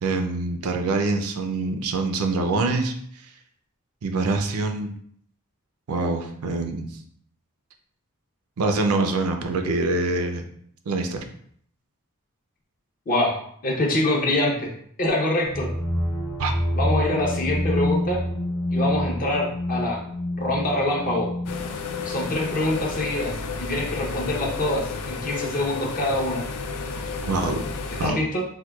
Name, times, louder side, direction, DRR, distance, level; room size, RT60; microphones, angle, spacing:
voice 1, 0.0-2.9 4.0-4.9 5.9-6.9 8.6-10.4 10.9-11.2 16.4-16.5 27.2-27.6 28.0-28.2, right 3 dB, 70° right, 5 dB, 0.4 m, -25 dB
voice 2, 13.1-13.4 13.6-14.7 15.0-15.7 16.7-18.2 18.7-20.0 20.4-21.3 22.1-26.4 28.0-28.4, left 1 dB, 40° left, -2 dB, 0.6 m, -25 dB
sound 1, 15.4-23.1, left 1 dB, 70° left, 0.9 m, -28 dB
sound 2, 21.5-28.1, left 4 dB, 85° left, 0.4 m, -32 dB
4.4 x 2.2 x 2.2 m, 0.64 s
head